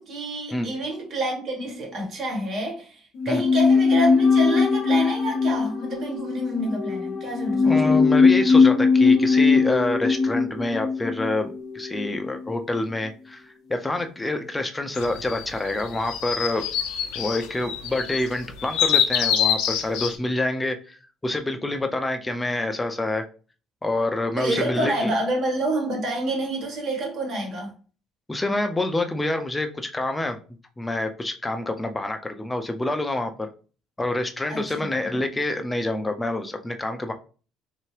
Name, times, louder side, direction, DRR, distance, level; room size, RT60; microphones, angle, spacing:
voice 1, 0.0-8.0 24.4-27.7 34.5-34.9, right 1 dB, 50° right, 1.4 m, -28 dB
sound 1, 3.1-12.5 12.7-12.8, left 4 dB, 55° left, 0.8 m, -20 dB
voice 2, 7.6-16.6 17.2-20.9 21.2-23.2 23.8-25.1 28.3-30.4 30.8-33.5 34.0-37.1, left 2 dB, 15° left, 0.5 m, -27 dB
sound 2, 14.9-20.2, left 9 dB, 90° left, 0.6 m, -25 dB
3.3 x 2.9 x 3.2 m
cardioid pair, 120°, 0 cm